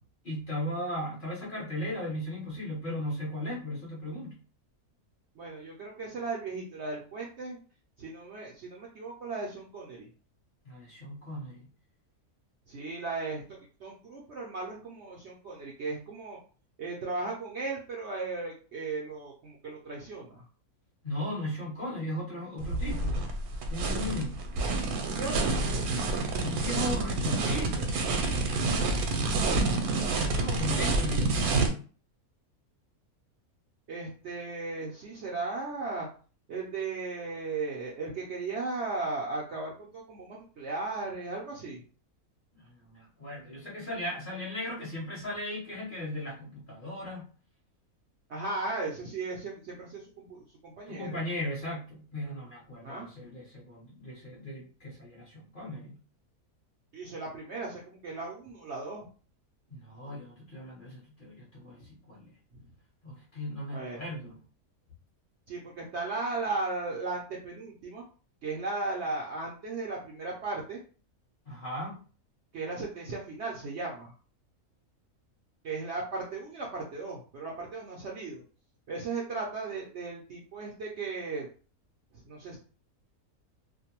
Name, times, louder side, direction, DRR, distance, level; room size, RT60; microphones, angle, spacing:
voice 1, 0.2-4.4 10.7-11.6 21.0-23.2 23.7-24.5 26.4-27.9 30.2-31.5 42.5-47.2 50.9-56.0 59.7-62.3 63.0-64.4 71.5-72.0, left 1 dB, 40° left, -5 dB, 0.8 m, -37 dB
voice 2, 5.4-7.6 8.0-10.1 12.7-16.4 16.8-20.4 25.0-25.9 30.2-30.9 33.9-36.1 36.5-41.8 48.3-51.2 52.8-53.1 56.9-59.1 63.7-64.0 65.5-68.0 68.4-70.8 72.5-74.1 75.6-78.4 78.9-81.5 82.2-82.6, right 3 dB, 65° right, -2 dB, 0.7 m, -36 dB
sound 1, 22.6-31.7, right 3 dB, 80° right, 1.1 m, -28 dB
2.5 x 2.1 x 2.8 m, 0.39 s
omnidirectional pair, 1.6 m